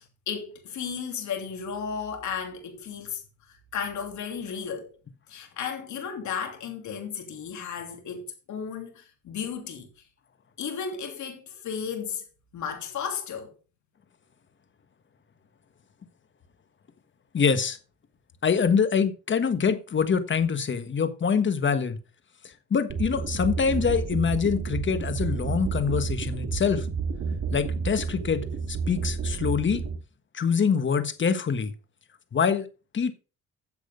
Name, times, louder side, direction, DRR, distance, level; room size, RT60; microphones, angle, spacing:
voice 1, 0.0-3.2 3.5-4.9 5.3-9.9 10.6-12.2 12.5-13.5, left 7 dB, 70° left, 3.1 m, -34 dB
voice 2, 17.3-17.8 18.4-22.0 22.4-26.9 27.5-29.8 30.3-31.7 32.3-32.7 32.9-33.1, left 6 dB, 40° left, 1.4 m, -25 dB
sound 1, 22.9-30.0, right 5 dB, 60° right, 2.0 m, -30 dB
10.5 x 7.6 x 3.8 m
cardioid pair, 90°, 30 cm